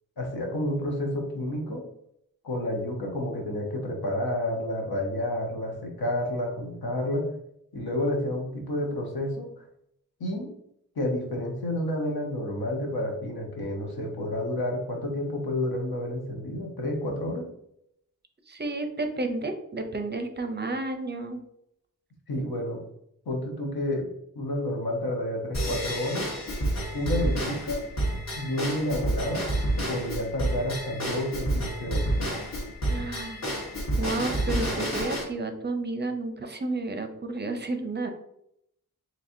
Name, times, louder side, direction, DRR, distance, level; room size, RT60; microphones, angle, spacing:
voice 1, 0.2-1.9 2.4-7.3 7.7-9.6 10.2-10.5 11.0-17.5 22.3-22.8 23.3-24.1 24.3-26.3 26.9-27.8 28.4-29.5 29.9-32.1, left 1 dB, 85° left, 0 dB, 1.0 m, -30 dB
voice 2, 18.5-21.4 32.9-33.4 34.0-38.1, right 2 dB, 30° right, 6 dB, 0.5 m, -31 dB
Drum kit / Drum / Bell, 25.5-35.2, right 1 dB, 45° left, 1.0 m, -29 dB
4.1 x 3.1 x 2.6 m, 0.75 s
wide cardioid pair, 105°, 37 cm